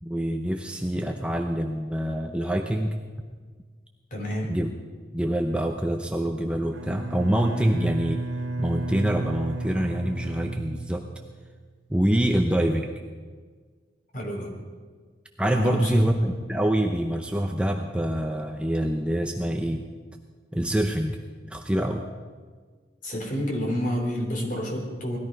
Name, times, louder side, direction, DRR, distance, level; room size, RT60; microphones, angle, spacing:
voice 1, 0.0-3.0 4.5-4.7 5.1-8.2 8.6-11.1 11.9-12.9 15.4-19.8 20.5-21.2 21.5-22.0, right 1 dB, 5° right, 3 dB, 0.7 m, -25 dB
voice 2, 4.1-4.5 14.1-14.5 15.5-16.1 23.0-25.2, equal, 45° left, 0 dB, 3.3 m, -29 dB
Bowed string instrument, 6.7-11.5, right 2 dB, 85° right, 1.0 m, -33 dB
19.0 x 14.0 x 5.3 m, 1.5 s
head